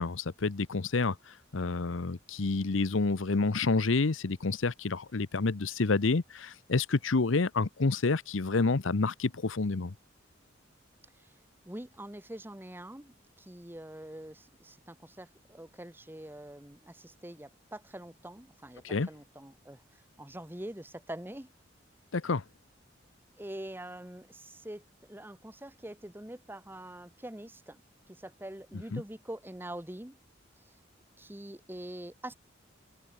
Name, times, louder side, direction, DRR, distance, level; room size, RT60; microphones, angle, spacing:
voice 1, 0.0-9.9 18.8-19.1 22.1-22.4 28.9-29.0, left 3 dB, 80° left, 0.8 m, -29 dB
voice 2, 11.6-19.8 20.2-21.5 23.4-27.8 28.1-30.2 30.7-30.8 31.2-32.3, right 1 dB, 10° right, 1.2 m, -44 dB
head